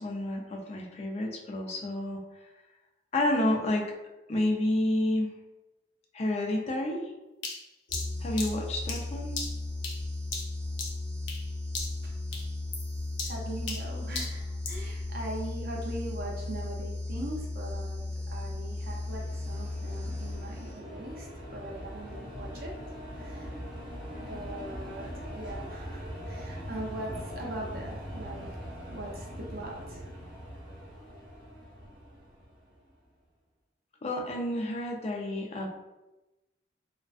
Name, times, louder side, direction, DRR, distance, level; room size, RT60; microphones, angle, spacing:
voice 1, 0.0-2.2 3.1-3.9 4.3-5.3 6.1-7.1 8.2-9.4 34.0-35.7, left 1 dB, 35° left, 1 dB, 0.3 m, -29 dB
sound 1, 7.4-11.5 11.7-12.1 12.3-14.9, left 4 dB, 85° left, 0.6 m, -38 dB
sound 2, 7.9-21.0, left 2 dB, 50° left, 0.8 m, -36 dB
voice 2, 13.2-22.7 23.2-23.5 24.2-30.0, right 1 dB, 55° right, -1 dB, 0.5 m, -41 dB
sound 3, 18.4-32.9, equal, 5° right, 0.8 m, -42 dB
2.4 x 2.2 x 2.3 m, 1.0 s
head